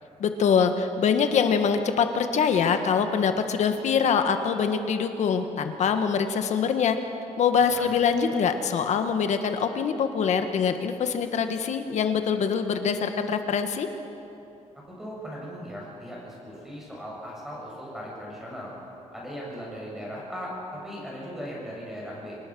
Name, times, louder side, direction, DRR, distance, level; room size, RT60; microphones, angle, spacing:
voice 1, 0.2-7.0 7.4-13.9, left 6 dB, 70° left, 7 dB, 1.5 m, -24 dB
voice 2, 15.0-18.7 19.1-22.4, equal, 5° right, -4 dB, 7.4 m, -38 dB
26.5 x 19.0 x 6.2 m, 2.8 s
wide cardioid pair, 155°, 12 cm